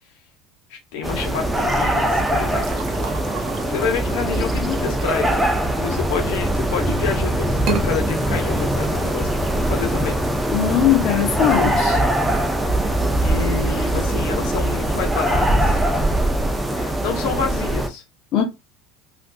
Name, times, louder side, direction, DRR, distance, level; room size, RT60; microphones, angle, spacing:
voice 1, 0.7-2.8 3.7-10.2 12.8-12.9 13.2-15.8 16.7-18.0, left 7 dB, 75° left, 1.0 m, -28 dB
sound 1, 1.0-17.9, right 1 dB, 5° right, 0.6 m, -21 dB
sound 2, 2.5-6.3 6.8-7.2 7.5-7.9, right 7 dB, 55° right, 0.7 m, -32 dB
voice 2, 10.5-12.0 18.3-18.4, left 9 dB, 50° left, 0.9 m, -19 dB
3.4 x 2.6 x 2.5 m
supercardioid pair, 130°, 0 cm